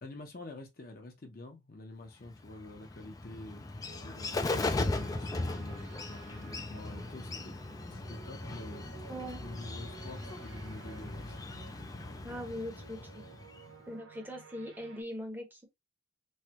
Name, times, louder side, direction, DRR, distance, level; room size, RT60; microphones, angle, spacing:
voice 1, 0.0-7.5 7.9-8.9 9.4-11.4, left 2 dB, 50° left, 0.8 m, -47 dB
Bird, 2.3-13.8, left 2 dB, 20° left, 0.3 m, -38 dB
sound 1, 3.9-15.0, right 4 dB, 85° right, 0.8 m, -53 dB
voice 2, 9.1-9.4 12.2-13.3 13.9-15.6, equal, 10° right, 0.8 m, -41 dB
3.2 x 2.3 x 2.9 m
head